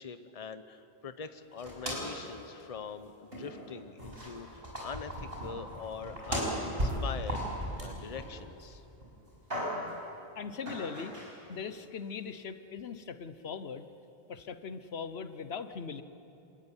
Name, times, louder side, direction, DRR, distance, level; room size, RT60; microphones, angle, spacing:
voice 1, 0.0-7.5 7.8-8.8, left 6 dB, 35° left, 10 dB, 1.0 m, -43 dB
sound 1, 1.6-2.3 2.6-2.7 3.3-3.7 4.0-8.6 9.0-10.0 10.7-11.3, equal, 70° right, 5.8 m, -36 dB
voice 2, 10.3-11.1 11.5-13.9 14.3-16.0, left 6 dB, 80° left, 11 dB, 1.2 m, -40 dB
26.5 x 14.0 x 9.9 m, 2.9 s
omnidirectional pair, 1.1 m